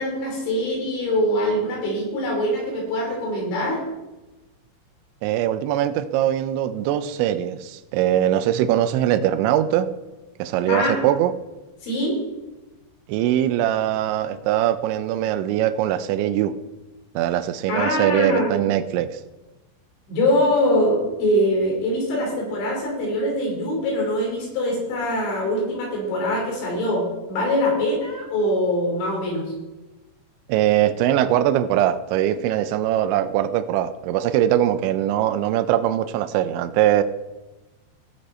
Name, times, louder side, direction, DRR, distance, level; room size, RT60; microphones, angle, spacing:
voice 1, 0.0-3.8 10.7-11.0 11.8-12.2 17.7-18.5 20.1-29.5, left 1 dB, 70° left, -2 dB, 5.6 m, -23 dB
voice 2, 5.2-9.9 10.4-11.3 13.1-16.6 17.2-19.1 30.5-37.0, right 12 dB, 85° right, 11 dB, 2.8 m, -21 dB
18.5 x 6.5 x 4.3 m, 1.1 s
omnidirectional pair, 5.7 m